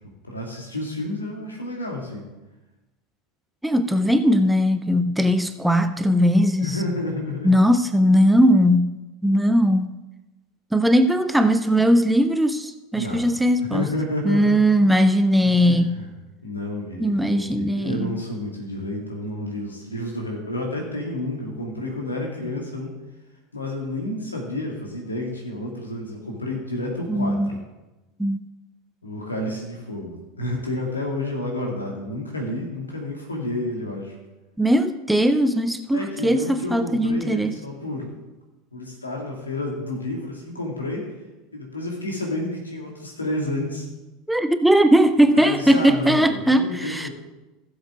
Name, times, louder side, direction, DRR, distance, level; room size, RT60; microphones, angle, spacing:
voice 1, 0.0-2.2 6.6-7.6 12.9-13.2 13.6-14.7 15.4-16.1 16.4-22.9 23.5-27.6 29.0-34.2 35.9-38.1 38.7-41.1 41.5-43.9 45.3-47.1, left 1 dB, 80° left, 0 dB, 2.3 m, -30 dB
voice 2, 3.6-6.8 7.4-8.9 9.2-9.9 10.7-13.9 14.3-16.0 17.0-18.2 27.1-27.6 28.2-28.4 34.6-37.6 44.3-47.1, equal, 5° right, 9 dB, 0.6 m, -19 dB
16.0 x 7.4 x 3.6 m, 1.1 s
figure-of-eight pair, 80°, 0 cm